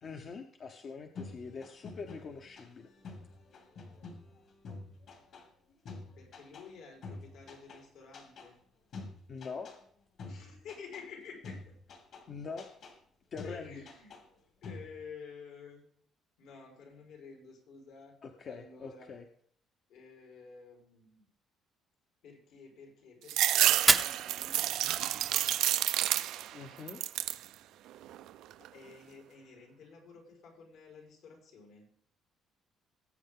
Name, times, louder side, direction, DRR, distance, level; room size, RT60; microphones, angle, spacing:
voice 1, 0.0-2.9 9.3-9.7 12.3-12.7 13.3-13.8 18.2-19.2 26.5-27.0, left 5 dB, 35° left, 5 dB, 0.8 m, -43 dB
sound 1, 1.2-6.7 7.0-7.8 8.1-8.5 8.9-9.8 10.2-11.0 11.4-12.2 12.6-13.0 13.4-14.4 14.6-15.0, left 3 dB, 50° left, 2.5 m, -47 dB
voice 2, 6.2-8.6 10.2-11.8 13.4-14.1 14.6-15.8 16.4-18.1 18.4-19.1 19.9-21.2 22.2-24.7 25.0-26.7 28.6-31.8, left 5 dB, 75° left, 1 dB, 4.6 m, -51 dB
sound 2, 23.3-26.6 26.9-27.5 27.9-28.7, right 13 dB, 75° right, 0.4 m, -29 dB
Fire, 23.7-25.7, right 3 dB, 15° right, 0.6 m, -31 dB
19.0 x 8.4 x 3.7 m, 0.62 s
cardioid pair, 165°, 0 cm